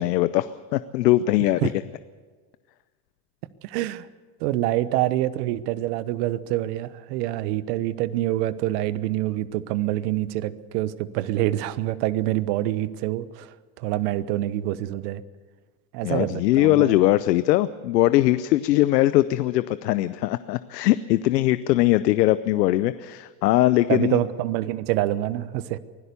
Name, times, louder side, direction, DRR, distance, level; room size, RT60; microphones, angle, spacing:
voice 1, 0.0-1.7 16.0-24.2, left 15 dB, 90° left, 14 dB, 0.8 m, -21 dB
voice 2, 3.6-4.1 4.4-13.5 13.8-15.2 15.9-17.0 23.9-25.8, right 14 dB, 70° right, 15 dB, 1.2 m, -26 dB
24.5 x 16.5 x 7.0 m, 1.5 s
supercardioid pair, 100°, 48 cm